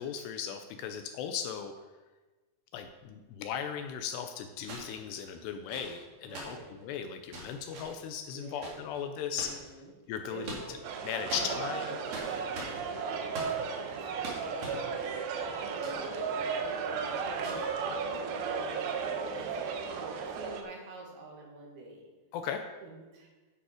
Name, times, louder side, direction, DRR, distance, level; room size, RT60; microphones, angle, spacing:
voice 1, 0.0-1.7 2.7-9.6 10.1-10.8 11.0-12.0 22.3-22.6, left 8 dB, 80° left, 7 dB, 2.5 m, -37 dB
sound 1, 2.7-2.8 4.6-9.7 10.2-11.0 11.3-16.2 16.5-16.6 17.4-17.7 18.6-18.8, right 2 dB, 45° right, 2.6 m, -44 dB
voice 2, 6.2-6.8 8.3-8.6 9.3-9.9 10.3-10.8 11.4-22.1 22.8-23.3, right 2 dB, 60° right, -1 dB, 3.4 m, -47 dB
sound 2, 10.8-20.6, right 5 dB, 80° right, 2.9 m, -35 dB
10.0 x 8.0 x 4.9 m, 1.2 s
omnidirectional pair, 5.3 m